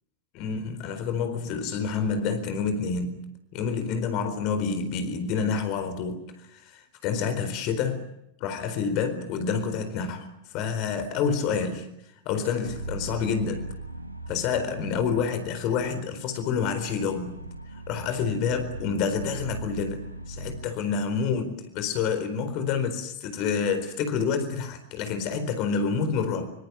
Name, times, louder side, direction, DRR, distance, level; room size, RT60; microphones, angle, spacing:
voice 1, 0.3-3.2 3.5-8.0 8.4-11.9 12.3-13.7 14.3-17.3 17.9-20.0 20.3-26.5, left 6 dB, 40° left, 9 dB, 4.3 m, -28 dB
sound 1, 12.6-20.7, right 2 dB, 90° right, 1.7 m, -39 dB
26.0 x 25.5 x 7.4 m, 0.81 s
figure-of-eight pair, 90°, 0 cm